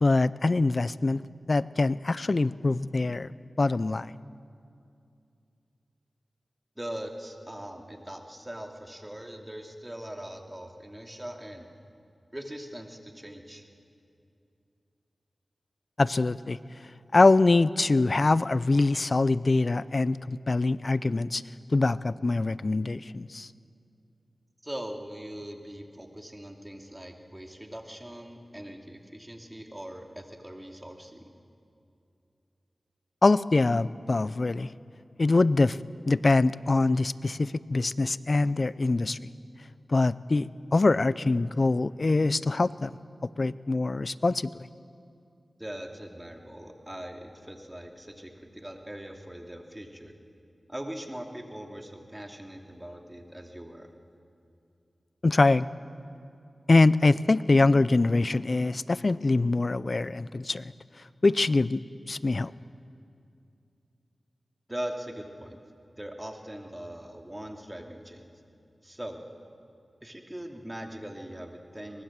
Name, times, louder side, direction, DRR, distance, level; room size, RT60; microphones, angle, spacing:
voice 1, 0.0-1.2 1.5-3.3 3.6-4.1 16.0-16.6 17.1-21.4 21.7-23.5 33.2-34.7 35.2-35.8 36.1-39.2 39.9-42.9 43.4-44.7 55.2-55.7 56.7-60.7 61.2-61.8 62.1-62.5, left 3 dB, 50° left, 18 dB, 0.5 m, -24 dB
voice 2, 6.8-11.7 12.3-13.6 24.6-31.3 45.6-50.1 50.7-53.9 64.7-65.6 66.0-68.3 68.8-69.2 70.0-72.0, right 1 dB, 15° right, 2 dB, 2.6 m, -41 dB
24.0 x 19.5 x 7.5 m, 2.5 s
cardioid pair, 45°, 0 cm